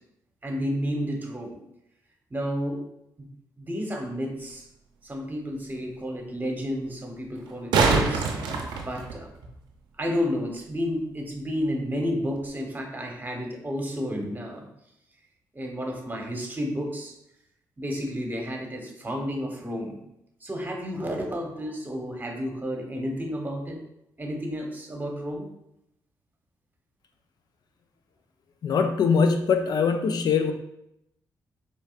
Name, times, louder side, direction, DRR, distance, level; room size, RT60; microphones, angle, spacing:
voice 1, 0.4-1.6 2.3-2.8 3.6-4.7 5.0-8.3 8.9-9.3 10.0-14.7 15.5-17.1 17.8-20.0 20.4-23.8 24.2-25.5, equal, 25° right, 1 dB, 1.1 m, -31 dB
sound 1, 4.5-4.6 7.4-9.5 12.4-12.5, right 4 dB, 85° right, 0.6 m, -24 dB
voice 2, 28.6-30.5, left 5 dB, 60° left, 7 dB, 0.5 m, -22 dB
4.6 x 3.2 x 2.4 m, 0.82 s
supercardioid pair, 60°, 8 cm